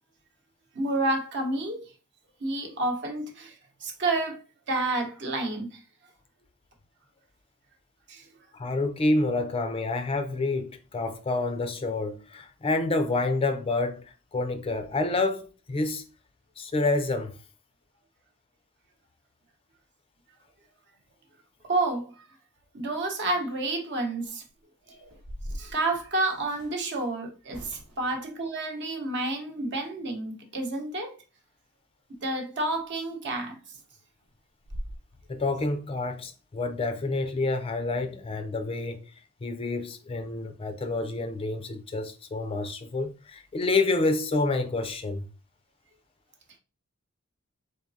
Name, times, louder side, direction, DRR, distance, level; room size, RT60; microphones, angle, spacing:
voice 1, 0.7-1.9 2.4-4.4 4.7-5.8 8.1-8.3 21.6-22.3 22.7-24.4 24.9-25.1 25.5-31.2 32.2-33.6, right 2 dB, 55° right, 0.9 m, -30 dB
voice 2, 8.5-16.0 16.6-17.4 35.3-39.0 39.4-45.3, left 2 dB, 25° left, 0.4 m, -28 dB
sound 1, 24.3-24.5 25.0-26.8 27.5-28.2 32.7-32.8 33.2-33.4 33.7-33.8 34.2-34.3 34.6-35.0, equal, 85° right, 1.1 m, -40 dB
3.8 x 3.5 x 2.6 m
head